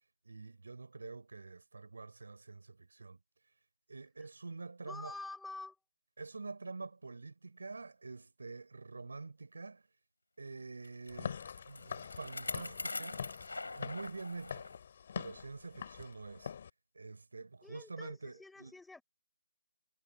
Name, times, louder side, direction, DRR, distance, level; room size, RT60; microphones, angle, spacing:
voice 1, 0.2-3.2 3.9-5.1 6.2-9.8 10.4-13.2 13.7-14.7 15.1-16.5 16.9-18.7, right 3 dB, 65° right, 5.8 m, -46 dB
voice 2, 4.8-5.8 17.6-19.0, left 3 dB, ahead, 3.9 m, -47 dB
Bicycle, 10.8-14.8 15.2-15.3 16.1-16.2, left 3 dB, 85° left, 3.6 m, -44 dB
Walk footsteps / Siren, 11.1-16.7, left 7 dB, 30° left, 5.1 m, -45 dB
figure-of-eight pair, 170°, 0 cm